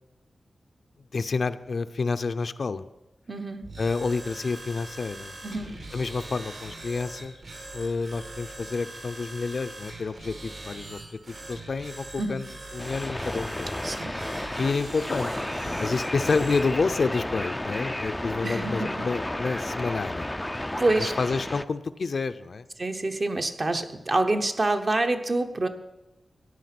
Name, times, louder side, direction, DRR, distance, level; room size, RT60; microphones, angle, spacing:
voice 1, 1.1-2.9 3.8-5.4 5.9-7.3 7.7-11.0 11.3-12.5 12.7-13.8 14.6-15.3 15.6-20.3 21.0-22.7, left 4 dB, 60° left, 10 dB, 0.5 m, -29 dB
voice 2, 3.3-3.7 5.4-5.8 12.2-12.4 13.8-14.2 18.4-19.1 20.8-21.1 22.8-25.7, right 2 dB, 40° right, 6 dB, 1.0 m, -27 dB
sound 1, 3.6-16.7, right 2 dB, 65° right, 3.1 m, -42 dB
sound 2, 12.8-21.6, left 1 dB, 10° left, 0.4 m, -32 dB
14.5 x 10.0 x 6.0 m, 1.0 s
wide cardioid pair, 120°, 0 cm